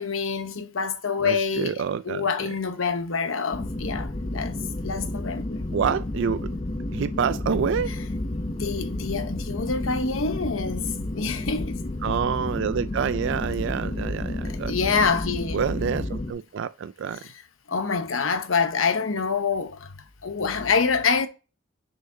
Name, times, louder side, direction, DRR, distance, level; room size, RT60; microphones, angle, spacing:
voice 1, 0.0-5.6 8.6-11.8 14.4-15.6 17.7-19.9 20.2-21.3, left 5 dB, 80° left, 0.9 m, -26 dB
voice 2, 1.2-2.2 5.7-6.5 6.9-7.9 12.0-14.7 15.5-17.2, right 7 dB, 65° right, 0.3 m, -27 dB
sound 1, 3.5-16.3, left 1 dB, 30° left, 0.7 m, -31 dB
6.5 x 5.6 x 2.7 m
head